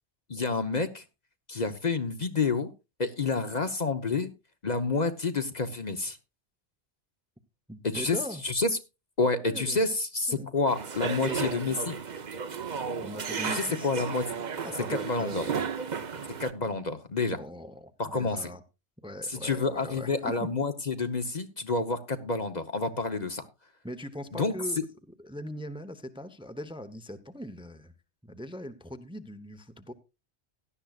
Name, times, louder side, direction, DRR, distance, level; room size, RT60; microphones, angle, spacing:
voice 1, 0.3-1.0 1.5-2.7 3.0-4.3 4.6-6.2 7.8-8.2 8.4-8.7 9.2-11.9 13.4-14.2 14.9-15.5 16.4-17.4 18.0-18.5 19.3-23.4 24.3-24.5, left 3 dB, 40° left, 1.0 m, -29 dB
voice 2, 7.7-8.4 9.2-9.8 10.3-10.5 11.0-11.8 13.0-14.1 14.6-15.6 17.3-18.6 19.0-20.5 23.8-24.8 25.2-27.9 28.2-29.9, equal, 5° right, 0.8 m, -40 dB
sound 1, 10.7-16.5, right 6 dB, 45° right, 0.9 m, -34 dB
17.0 x 12.0 x 2.4 m
omnidirectional pair, 1.1 m